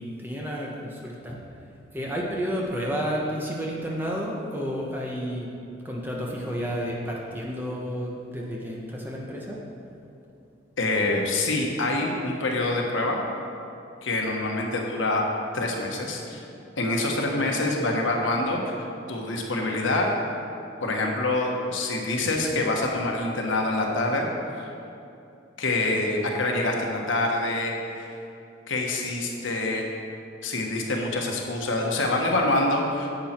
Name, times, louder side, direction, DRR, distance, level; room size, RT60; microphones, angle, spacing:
voice 1, 0.0-1.6 1.9-5.5 5.8-9.6, equal, 10° right, -3 dB, 1.1 m, -31 dB
voice 2, 10.8-13.3 14.0-15.2 15.5-16.4 16.8-20.1 20.8-24.3 25.6-28.1 28.7-29.9 30.4-33.1, left 2 dB, 80° left, 0 dB, 1.3 m, -26 dB
10.5 x 7.8 x 4.5 m, 2.7 s
head